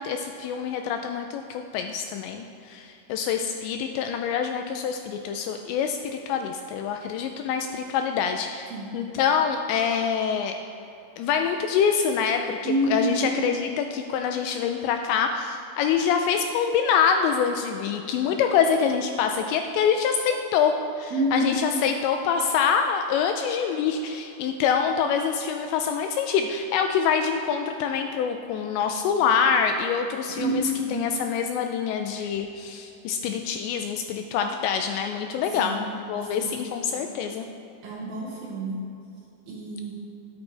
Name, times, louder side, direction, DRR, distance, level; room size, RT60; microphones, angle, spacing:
voice 1, 0.0-10.6 11.2-20.7 21.0-30.6 30.9-35.8 36.1-37.4, left 7 dB, 85° left, 5 dB, 2.6 m, -25 dB
voice 2, 12.6-13.3 21.1-21.6 30.4-31.1 35.6-35.8 36.4-36.5 37.8-38.8 39.5-39.9, right 1 dB, 65° right, -3 dB, 2.6 m, -27 dB
12.5 x 10.5 x 3.3 m, 2.8 s
omnidirectional pair, 5.4 m